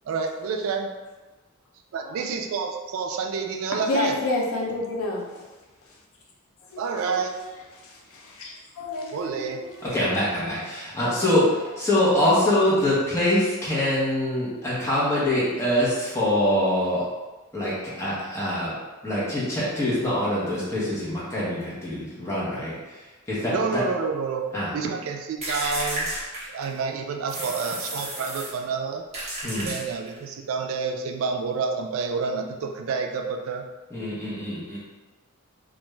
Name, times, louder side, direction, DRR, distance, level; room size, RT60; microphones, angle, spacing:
voice 1, 0.1-0.9 1.9-4.2 6.8-7.3 9.1-9.6 23.5-24.5 24.7-26.1 26.5-29.0 29.5-33.7, right 5 dB, 75° right, 3 dB, 0.3 m, -28 dB
voice 2, 3.7-5.4 6.7-7.5 7.8-10.2, left 2 dB, 75° left, -1 dB, 0.5 m, -31 dB
voice 3, 9.8-17.1 17.5-18.7 19.0-23.0 23.3-23.8 24.5-24.7 29.4-29.7 33.9-34.8, left 1 dB, 15° left, -9 dB, 0.8 m, -24 dB
sound 1, 25.4-26.8 27.3-28.6 29.1-30.2, right 1 dB, 30° right, 0.7 m, -32 dB
2.4 x 2.3 x 3.0 m, 1.2 s
head